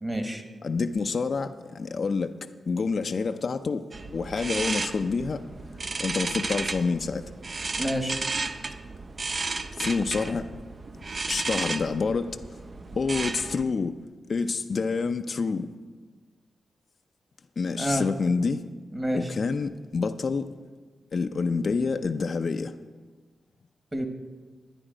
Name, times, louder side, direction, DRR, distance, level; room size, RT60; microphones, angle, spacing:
voice 1, 0.0-0.4 7.8-8.2 17.8-18.1 18.9-19.3 23.9-24.1, equal, 15° right, 1.3 m, -28 dB
voice 2, 0.6-5.4 6.0-7.2 9.8-10.5 11.3-12.4 12.9-14.0 14.3-15.7 17.6-18.6 19.1-20.5 21.1-22.7, left 4 dB, 55° left, 0.5 m, -28 dB
sound 1, 3.9-13.6, right 3 dB, 40° right, 0.5 m, -33 dB
12.0 x 9.8 x 5.0 m
cardioid pair, 90°, 0 cm